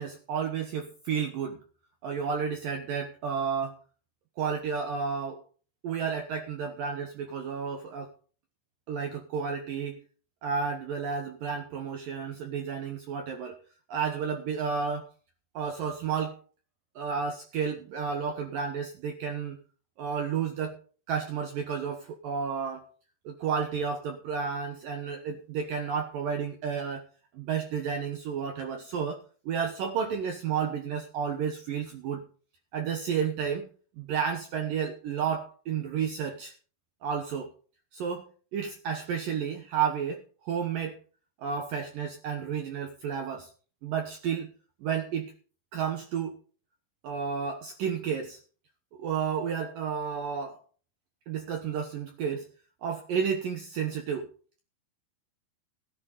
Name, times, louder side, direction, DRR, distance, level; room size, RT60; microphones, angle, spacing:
voice 1, 0.0-1.6 2.0-3.8 4.4-5.4 5.8-8.1 8.9-10.0 10.4-13.6 13.9-15.1 15.5-16.4 17.0-19.6 20.0-20.8 21.1-22.9 23.3-27.0 27.3-32.2 32.7-33.7 34.0-36.5 37.0-37.5 37.9-41.0 41.4-43.5 43.8-44.5 44.8-45.3 45.7-46.4 47.0-48.4 49.0-50.6 51.3-52.5 52.8-54.3, right 6 dB, 70° right, 5 dB, 2.1 m, -31 dB
17.0 x 10.0 x 3.9 m, 0.39 s
omnidirectional pair, 5.4 m